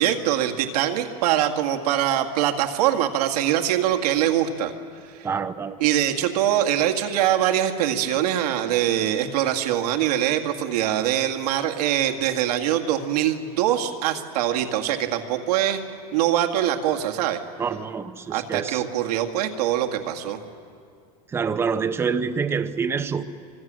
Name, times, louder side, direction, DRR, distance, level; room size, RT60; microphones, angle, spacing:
voice 1, 0.0-4.7 5.1-5.3 5.8-15.8 16.1-17.4 18.3-20.4, right 11 dB, 80° right, 5 dB, 2.0 m, -23 dB
voice 2, 5.2-5.8 17.6-18.8 21.3-23.2, right 6 dB, 10° right, 10 dB, 0.8 m, -26 dB
25.5 x 22.5 x 7.6 m, 2.3 s
supercardioid pair, 165°, 20 cm